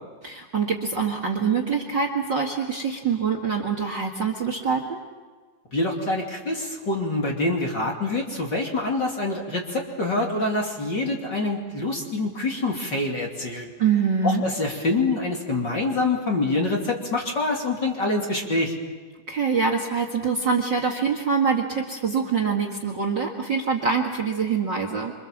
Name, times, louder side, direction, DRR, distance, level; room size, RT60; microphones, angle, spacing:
voice 1, 0.2-5.0 13.8-14.4 19.3-25.1, right 5 dB, 40° right, 3 dB, 2.1 m, -24 dB
voice 2, 5.7-13.7 14.2-18.7, left 2 dB, 35° left, 0 dB, 3.1 m, -26 dB
27.0 x 26.0 x 7.4 m, 1.4 s
omnidirectional pair, 3.9 m